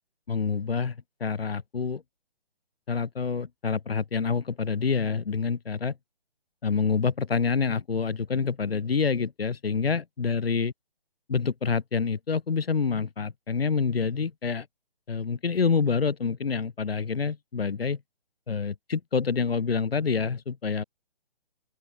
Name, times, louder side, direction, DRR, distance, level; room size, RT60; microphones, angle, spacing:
voice 1, 0.3-2.0 2.9-6.0 6.6-10.7 11.3-14.7 15.1-18.0 18.5-20.8, left 5 dB, 80° left, 1.1 m, -27 dB
open air
figure-of-eight pair, 140°, 29 cm